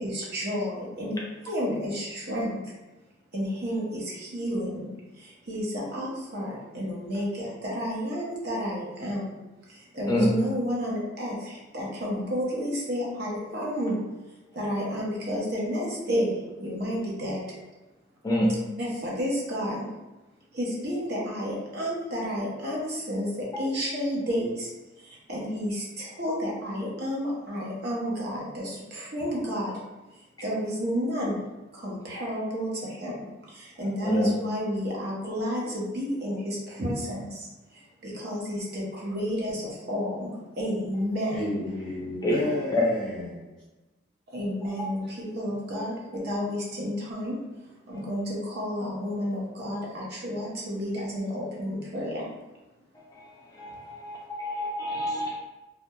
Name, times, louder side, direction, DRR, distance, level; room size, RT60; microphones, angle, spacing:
voice 1, 0.0-2.7 3.3-9.3 9.7-14.0 14.5-17.4 18.8-19.8 20.5-24.7 25.0-29.8 30.1-31.4 31.7-41.6 44.3-47.4 47.9-52.3, equal, 55° right, 0.7 m, -31 dB
voice 2, 18.2-18.5 34.0-34.3 42.2-42.4 42.7-42.8 53.5-55.3, equal, 20° left, 0.3 m, -26 dB
voice 3, 41.3-43.5, equal, 90° right, 1.5 m, -31 dB
2.2 x 2.1 x 2.8 m
head